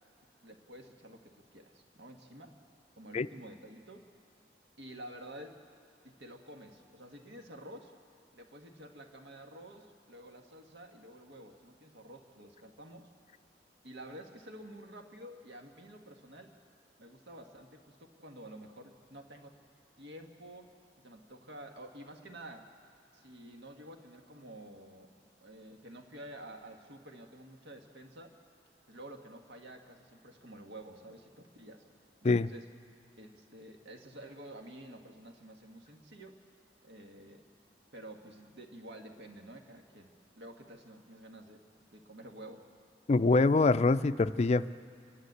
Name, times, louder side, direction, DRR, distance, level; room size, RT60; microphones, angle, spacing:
voice 1, 0.4-2.6 2.9-4.1 4.8-5.6 6.0-7.9 8.3-13.1 13.8-16.6 17.0-19.6 20.0-20.7 21.0-22.7 23.1-25.1 25.4-28.3 28.9-31.8 32.2-32.6 33.2-36.4 36.8-37.4 37.9-41.6 41.9-42.7, right 1 dB, 75° right, 4 dB, 1.6 m, -50 dB
voice 2, 43.1-44.7, left 3 dB, 40° left, 14 dB, 0.4 m, -25 dB
28.5 x 11.5 x 8.0 m, 2.2 s
head